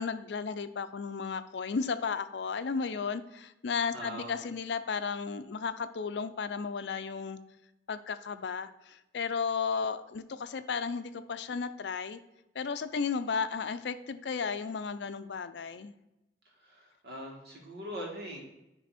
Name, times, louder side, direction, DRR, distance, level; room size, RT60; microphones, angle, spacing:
voice 1, 0.0-7.4 7.9-12.2 12.5-15.9, left 5 dB, 75° left, 12 dB, 0.4 m, -34 dB
voice 2, 3.9-4.4 16.5-18.4, equal, 65° right, -2 dB, 2.0 m, -42 dB
9.4 x 3.4 x 4.2 m, 0.94 s
head